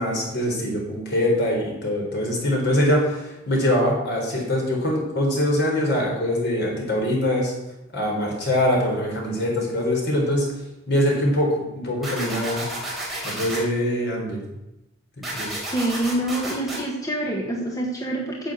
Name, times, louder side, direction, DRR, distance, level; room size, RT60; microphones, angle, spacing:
voice 1, 0.0-7.5 7.9-10.5 10.9-12.7 13.2-14.4 15.3-15.6, left 1 dB, 60° left, -1 dB, 4.3 m, -23 dB
sound 1, 12.0-13.6 15.2-16.8, right 1 dB, ahead, 4.0 m, -31 dB
voice 2, 15.7-18.5, right 1 dB, 15° left, -1 dB, 1.4 m, -26 dB
9.9 x 7.4 x 8.0 m, 0.96 s
head